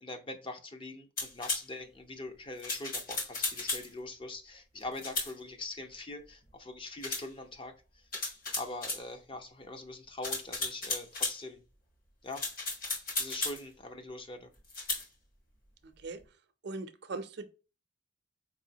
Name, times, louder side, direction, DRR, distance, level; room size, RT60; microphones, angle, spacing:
voice 1, 0.0-8.1 8.5-11.6 12.2-12.4 13.2-14.5, left 2 dB, 25° left, 0.5 m, -43 dB
sound 1, 1.2-1.6 2.6-3.9 5.0-5.3 7.0-7.3 8.1-9.0 10.2-11.4 12.3-13.6 14.7-15.0, left 3 dB, 45° left, 1.4 m, -34 dB
voice 2, 15.8-16.4 16.6-17.5, right 3 dB, 60° right, 0.5 m, -40 dB
4.5 x 3.0 x 2.7 m
head